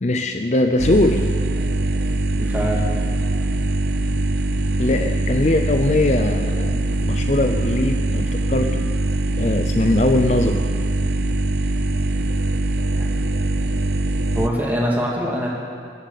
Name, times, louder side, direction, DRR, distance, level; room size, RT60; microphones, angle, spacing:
voice 1, 0.0-1.3 4.8-8.9 9.4-10.6, left 2 dB, 40° left, 6 dB, 0.6 m, -21 dB
sound 1, 0.8-14.5, right 2 dB, 65° right, 0.7 m, -22 dB
voice 2, 2.3-2.8 12.9-13.1 14.3-15.5, equal, 10° right, -3 dB, 2.2 m, -23 dB
22.0 x 7.6 x 7.0 m, 2.3 s
head